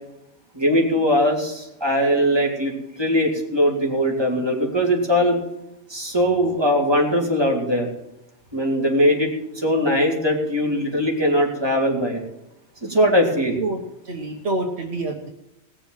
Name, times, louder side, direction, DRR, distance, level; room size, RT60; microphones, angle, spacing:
voice 1, 0.5-5.4 5.9-7.9 8.5-9.3 9.5-12.2 12.8-13.6, equal, 20° right, -1 dB, 3.2 m, -20 dB
voice 2, 14.0-15.3, right 2 dB, 70° right, 4 dB, 1.5 m, -27 dB
18.5 x 7.0 x 7.4 m, 0.88 s
omnidirectional pair, 1.2 m